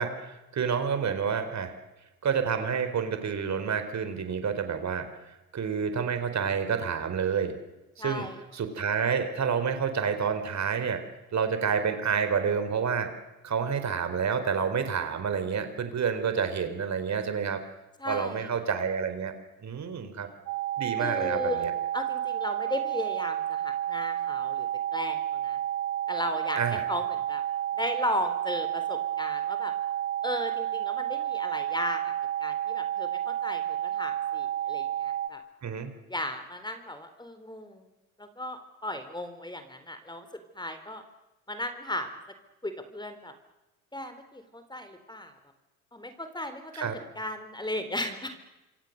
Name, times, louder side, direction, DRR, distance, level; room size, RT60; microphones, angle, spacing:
voice 1, 0.0-1.7 2.2-7.6 8.0-8.3 8.5-11.0 11.3-13.1 13.4-17.6 18.1-19.3 19.6-20.3 20.8-21.7 26.5-26.8 35.6-35.9 46.7-47.0, right 6 dB, 40° right, 9 dB, 4.4 m, -29 dB
voice 2, 8.0-8.4 18.0-18.5 21.0-24.7 24.9-25.6 26.1-26.6 26.9-27.4 27.8-29.7 30.2-32.1 32.4-35.4 36.1-37.9 38.2-40.3 40.5-41.0 41.5-42.1 42.6-43.3 43.9-45.3 45.9-48.4, left 1 dB, 10° left, 9 dB, 4.0 m, -35 dB
sound 1, 20.5-35.3, right 11 dB, 75° right, 2.2 m, -31 dB
27.0 x 25.5 x 6.7 m, 1.0 s
hypercardioid pair, 65°, 43 cm